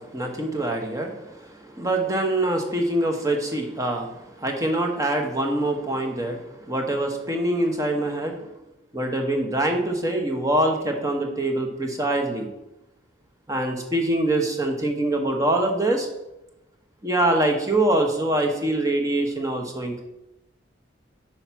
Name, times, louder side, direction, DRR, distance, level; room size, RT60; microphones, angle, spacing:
voice 1, 0.0-6.4 6.7-8.4 8.9-12.5 13.5-16.1 17.0-20.0, right 1 dB, 15° right, 3 dB, 0.9 m, -24 dB
5.6 x 4.5 x 5.8 m, 0.93 s
head